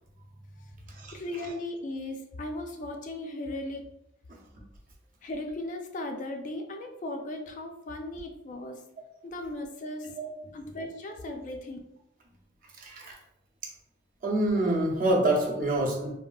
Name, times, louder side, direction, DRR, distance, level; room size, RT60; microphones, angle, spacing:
voice 1, 1.1-3.8 5.2-8.9 9.2-10.1 10.5-11.8, left 1 dB, 40° left, 3 dB, 0.3 m, -37 dB
voice 2, 10.0-10.6 12.8-13.2 14.2-16.1, right 1 dB, 45° right, -2 dB, 0.6 m, -27 dB
3.5 x 2.4 x 2.2 m, 0.83 s
head